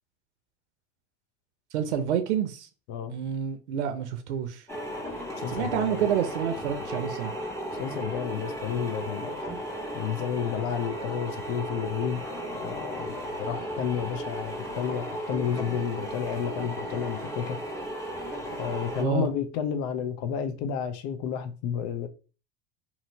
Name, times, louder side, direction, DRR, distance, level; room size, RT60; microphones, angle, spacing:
voice 1, 1.7-2.7 3.1-4.6 5.5-7.3 19.0-19.3, right 9 dB, 85° right, 0.6 m, -28 dB
sound 1, 4.7-19.0, equal, 10° left, 1.3 m, -35 dB
voice 2, 5.4-6.0 7.8-9.4 9.9-12.2 12.5-17.6 18.6-22.1, left 8 dB, 60° left, 0.6 m, -31 dB
2.8 x 2.7 x 2.7 m
hypercardioid pair, 80°, 33 cm